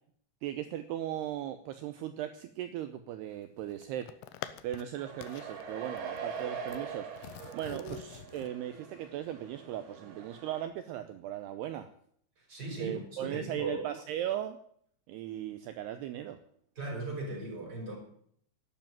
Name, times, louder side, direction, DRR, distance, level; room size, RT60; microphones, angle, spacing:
voice 1, 0.4-11.9 12.8-14.6 15.1-16.4, right 11 dB, 85° right, 9 dB, 2.4 m, -38 dB
sound 1, 3.3-4.9 5.2-5.6 6.0-6.8 7.2-8.5, left 13 dB, 80° left, 2.3 m, -46 dB
sound 2, 5.0-10.6, right 6 dB, 60° right, 3.6 m, -43 dB
voice 2, 12.4-13.9 16.8-18.0, right 2 dB, 20° right, 0 dB, 5.5 m, -38 dB
12.0 x 10.0 x 9.1 m, 0.65 s
omnidirectional pair, 5.5 m